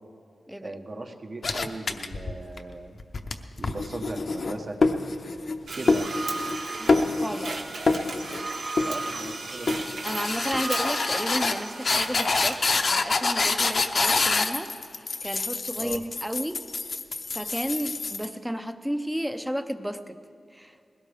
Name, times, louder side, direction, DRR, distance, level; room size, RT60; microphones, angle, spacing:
voice 1, 0.6-3.0 3.6-4.8 5.7-6.1 8.8-9.8 15.8-16.0, right 2 dB, 45° right, 3 dB, 1.3 m, -38 dB
sound 1, 1.4-2.6 3.0-5.6 5.9-6.6 6.9-7.5 7.9-8.4 8.8-9.3 9.7-18.3, left 3 dB, 50° left, 0.7 m, -26 dB
sound 2, 5.7-12.5, right 3 dB, 70° right, 1.4 m, -34 dB
voice 2, 6.8-7.8 10.0-14.7 15.2-16.6 17.3-20.2 20.5-20.7, equal, 5° right, 10 dB, 0.6 m, -33 dB
20.5 x 17.0 x 3.5 m, 2.4 s
wide cardioid pair, 110°, 0 cm